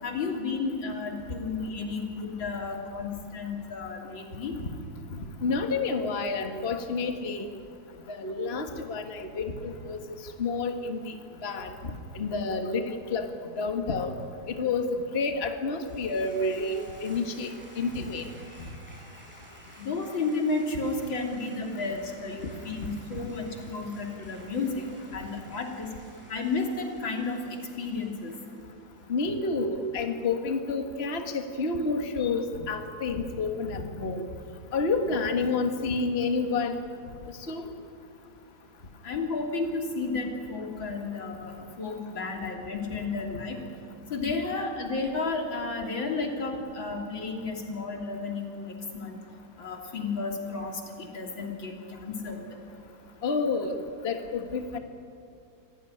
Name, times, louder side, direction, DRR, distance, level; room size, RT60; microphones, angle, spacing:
voice 1, 0.0-4.6 19.8-24.9 25.1-25.9 26.3-28.3 39.0-43.6 44.1-49.2 49.6-51.7 52.0-52.4, left 3 dB, 85° left, 2 dB, 3.9 m, -32 dB
voice 2, 5.1-7.5 8.1-10.0 10.4-11.1 11.4-13.3 13.6-14.1 14.5-18.3 29.1-34.3 34.7-36.8 37.5-37.7 53.2-53.8 54.0-54.8, left 3 dB, 35° left, 6 dB, 1.7 m, -29 dB
sound 1, 15.8-29.1, equal, 5° right, 8.0 m, -53 dB
26.0 x 17.5 x 10.0 m, 2.3 s
omnidirectional pair, 2.1 m